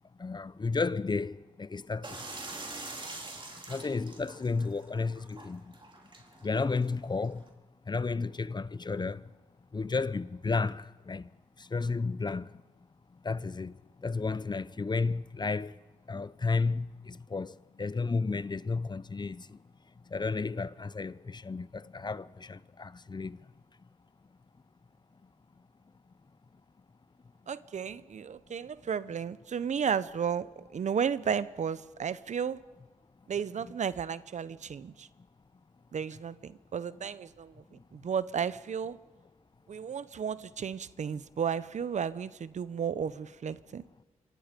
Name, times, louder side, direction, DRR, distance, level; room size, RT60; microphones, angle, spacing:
voice 1, 0.2-2.2 3.7-5.8 6.4-7.4 7.9-9.3 9.7-11.3 11.6-12.6 13.1-15.8 16.1-19.6 20.1-23.5, left 4 dB, 35° left, 0.7 m, -33 dB
sound 1, 2.0-7.5, right 2 dB, 40° right, 4.0 m, -45 dB
voice 2, 27.5-32.6 33.3-35.1 35.9-37.6 37.9-39.0 39.7-43.8, right 7 dB, 65° right, 0.8 m, -33 dB
26.5 x 24.5 x 5.2 m
cardioid pair, 60°, 13 cm